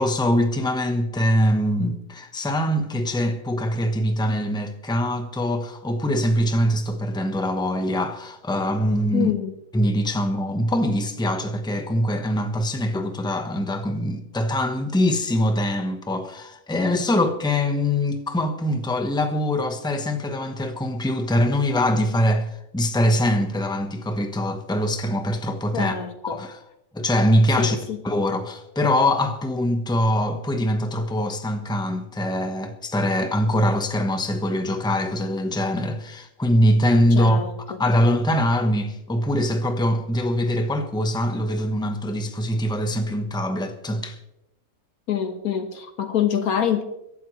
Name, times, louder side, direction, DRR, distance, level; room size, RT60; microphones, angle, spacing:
voice 1, 0.0-9.3 9.7-25.9 26.2-26.6 26.9-27.8 28.0-37.4 37.8-44.2, left 1 dB, 5° left, 1.0 m, -23 dB
voice 2, 9.1-9.5 25.7-26.4 27.6-28.0 37.1-37.8 45.1-46.8, left 9 dB, 85° left, 1.8 m, -26 dB
23.0 x 11.5 x 3.2 m
omnidirectional pair, 1.5 m